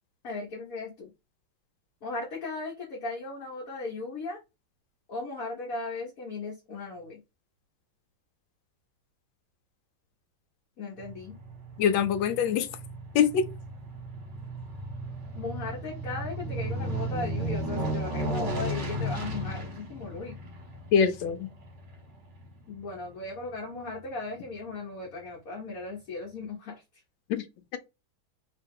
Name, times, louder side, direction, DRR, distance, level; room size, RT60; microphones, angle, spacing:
voice 1, 0.2-1.1 2.0-4.4 5.1-7.2 10.8-11.4 15.3-20.4 22.7-26.8, left 3 dB, 50° left, 1.2 m, -37 dB
Aircraft, 11.0-23.5 23.9-24.0, right 1 dB, 40° right, 1.2 m, -35 dB
voice 2, 11.8-12.7 13.1-13.5 20.9-21.5 27.3-27.4, left 7 dB, 75° left, 1.3 m, -24 dB
2.9 x 2.9 x 3.6 m
omnidirectional pair, 2.2 m